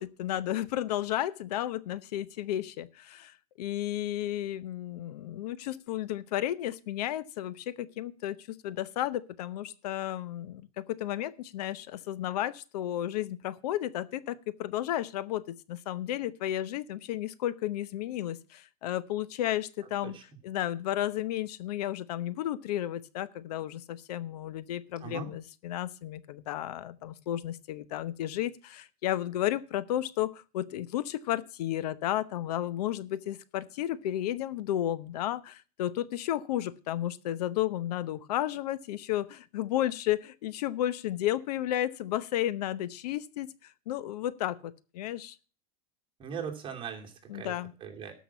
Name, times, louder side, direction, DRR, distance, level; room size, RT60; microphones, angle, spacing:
voice 1, 0.0-20.2 20.4-45.4 47.3-47.7, left 13 dB, 70° left, 16 dB, 0.9 m, -33 dB
voice 2, 46.2-47.5 47.8-48.1, right 7 dB, 25° right, 2 dB, 2.7 m, -39 dB
13.0 x 6.2 x 6.9 m, 0.36 s
supercardioid pair, 145°, 21 cm